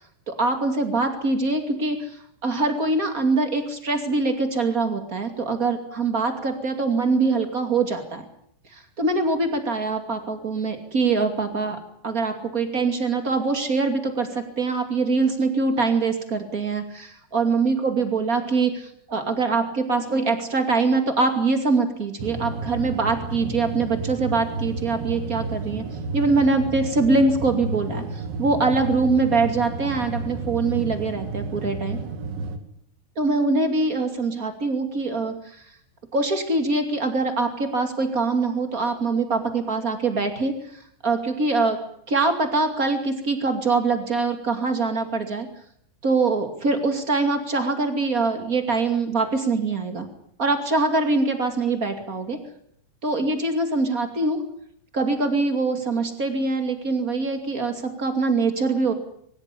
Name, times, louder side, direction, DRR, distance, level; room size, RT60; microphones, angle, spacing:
voice 1, 0.3-8.2 8.7-25.8 26.1-32.0 33.1-35.6 36.1-41.8 42.1-45.5 46.0-50.1 50.4-52.4 53.0-54.4 54.9-58.9, right 3 dB, 40° right, 6 dB, 1.1 m, -23 dB
sound 1, 22.2-32.6, right 3 dB, 70° right, 4.5 m, -31 dB
24.5 x 16.0 x 10.0 m, 0.69 s
omnidirectional pair, 5.9 m